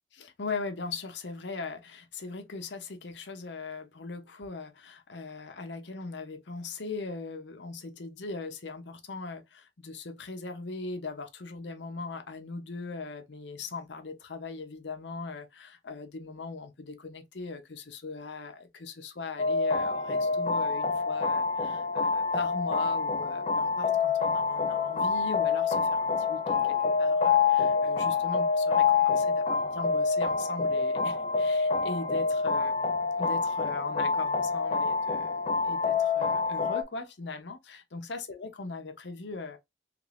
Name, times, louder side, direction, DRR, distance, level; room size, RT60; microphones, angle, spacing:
voice 1, 0.1-39.6, left 4 dB, 70° left, 0.7 m, -39 dB
sound 1, 19.4-36.8, left 5 dB, 35° left, 0.5 m, -27 dB
3.3 x 2.5 x 3.2 m
head